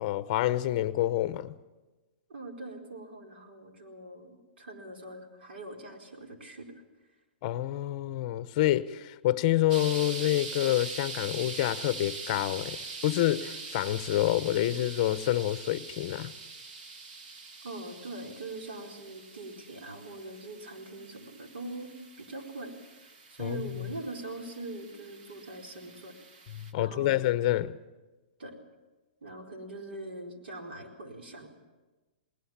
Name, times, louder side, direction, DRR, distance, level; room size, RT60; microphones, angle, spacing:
voice 1, 0.0-1.6 7.4-16.4 23.4-23.9 26.5-27.8, left 14 dB, 35° left, 0.8 m, -28 dB
voice 2, 2.3-6.7 17.6-21.9 22.2-23.0 23.3-26.1 26.8-27.2 28.4-28.6 29.2-31.5, right 2 dB, 90° right, 4.5 m, -42 dB
sound 1, 9.7-26.7, right 4 dB, 50° right, 1.9 m, -43 dB
19.5 x 19.5 x 7.3 m
hypercardioid pair, 160°, 6 cm